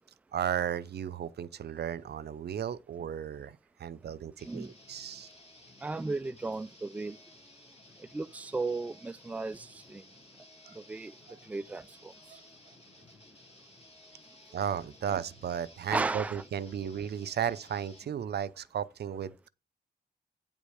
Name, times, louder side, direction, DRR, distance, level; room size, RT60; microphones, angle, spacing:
voice 1, 0.3-5.3 10.7-10.8 11.3-11.4 14.5-19.5, right 8 dB, 75° right, 0.5 m, -35 dB
sound 1, 4.4-18.1, left 2 dB, 35° left, 2.1 m, -56 dB
voice 2, 5.8-7.2 8.1-10.0 10.8-11.1 11.5-11.9 15.9-16.4, right 3 dB, 10° right, 0.3 m, -34 dB
9.0 x 5.2 x 4.9 m
wide cardioid pair, 90°, 17 cm